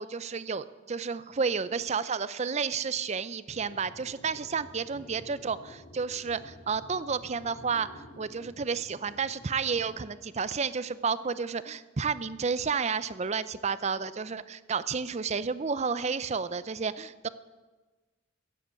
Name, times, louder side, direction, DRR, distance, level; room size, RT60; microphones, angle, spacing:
voice 1, 0.0-17.3, right 5 dB, 35° right, 15 dB, 0.5 m, -31 dB
sound 1, 3.5-9.9, equal, 70° left, 2.8 m, -51 dB
16.0 x 7.8 x 8.2 m, 1.2 s
head